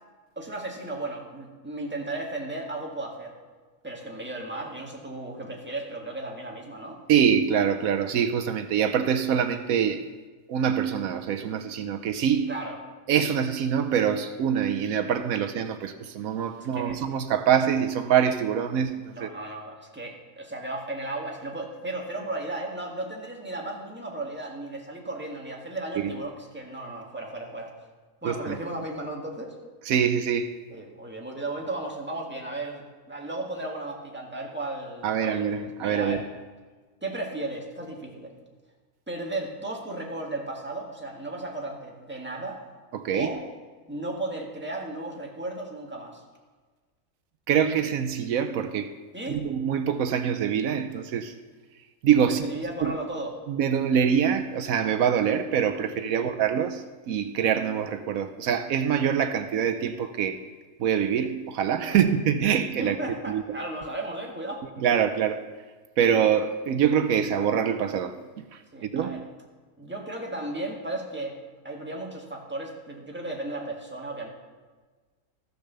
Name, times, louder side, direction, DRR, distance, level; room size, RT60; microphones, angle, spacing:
voice 1, 0.4-3.3 3.8-7.0 12.5-12.8 16.6-17.0 19.1-27.7 28.2-29.5 30.7-36.2 37.0-38.3 39.1-42.6 43.1-43.4 43.9-46.2 49.1-49.4 52.3-53.4 56.1-56.3 61.8-62.0 62.8-64.8 68.7-69.2 69.8-71.4 71.6-74.3, right 2 dB, 10° right, -1 dB, 1.8 m, -35 dB
voice 2, 7.1-10.1 10.5-12.5 13.1-19.3 26.0-26.2 28.2-28.6 29.9-30.5 35.0-36.3 42.9-43.3 47.5-48.9 49.3-51.3 52.0-52.6 52.8-53.0 53.5-60.4 60.8-63.0 63.3-63.4 64.8-65.4 66.0-69.2, right 8 dB, 80° right, 8 dB, 1.1 m, -25 dB
14.0 x 6.7 x 6.8 m, 1.4 s
omnidirectional pair, 1.5 m